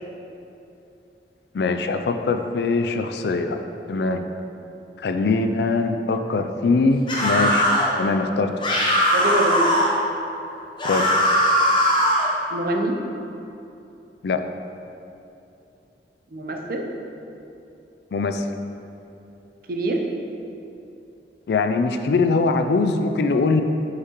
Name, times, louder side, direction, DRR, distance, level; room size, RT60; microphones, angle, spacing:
voice 1, 1.5-3.6 3.9-4.2 5.0-7.7 8.0-8.5 10.8-11.1 14.2-14.4 18.1-18.5 21.5-23.6, left 3 dB, 65° left, 7 dB, 0.4 m, -22 dB
sound 1, 7.1-7.9 8.6-9.9 10.8-12.3, equal, 25° left, 0.8 m, -19 dB
voice 2, 9.1-9.7 12.5-13.0 16.3-16.9 19.7-20.0, right 1 dB, 55° right, 2 dB, 0.6 m, -24 dB
6.4 x 5.8 x 3.0 m, 2.8 s
head